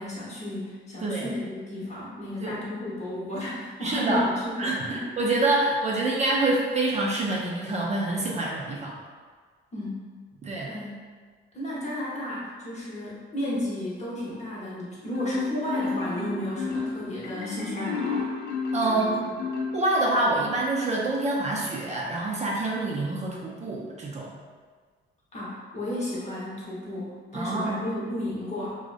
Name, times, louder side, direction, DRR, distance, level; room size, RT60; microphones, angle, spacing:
voice 1, 0.0-5.0 9.7-10.0 10.6-10.9 11.5-18.3 18.8-19.4 25.3-28.8, left 1 dB, 35° left, -7 dB, 0.9 m, -33 dB
voice 2, 3.8-4.2 4.6-9.0 10.4-10.7 18.7-19.1 19.7-24.3 27.3-27.8, right 2 dB, 35° right, -3 dB, 0.4 m, -26 dB
Marimba xylophone, 15.1-20.3, left 4 dB, 60° left, 0.5 m, -31 dB
2.5 x 2.0 x 2.4 m, 1.6 s
cardioid pair, 90°, 20 cm